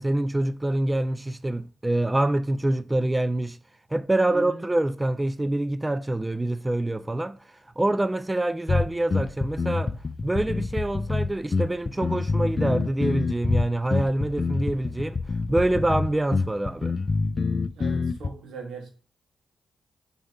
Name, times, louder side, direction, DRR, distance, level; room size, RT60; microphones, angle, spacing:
voice 1, 0.0-3.6 3.9-9.9 10.2-15.2 15.5-16.9, right 1 dB, 20° right, 0.3 m, -26 dB
voice 2, 4.3-4.6 17.7-18.9, right 3 dB, 75° right, 1.9 m, -38 dB
sound 1, 8.7-18.3, left 4 dB, 45° left, 0.4 m, -26 dB
7.7 x 4.0 x 3.6 m
supercardioid pair, 45°, 0 cm